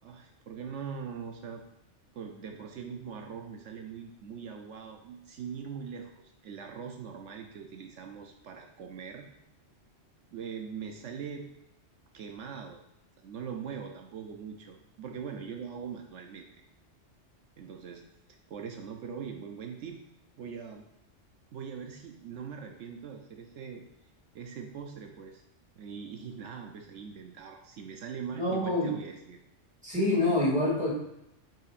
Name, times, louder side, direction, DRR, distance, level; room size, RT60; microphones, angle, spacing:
voice 1, 0.0-1.6 2.1-9.2 10.3-11.5 12.1-12.8 13.2-16.5 17.6-18.0 18.5-20.0 20.4-20.8 21.5-23.8 24.3-25.4 25.8-29.4, right 6 dB, 75° right, 3 dB, 1.0 m, -41 dB
voice 2, 28.3-28.9 29.8-30.9, left 2 dB, 5° right, -5 dB, 2.2 m, -26 dB
9.0 x 5.6 x 2.5 m, 0.87 s
omnidirectional pair, 1.3 m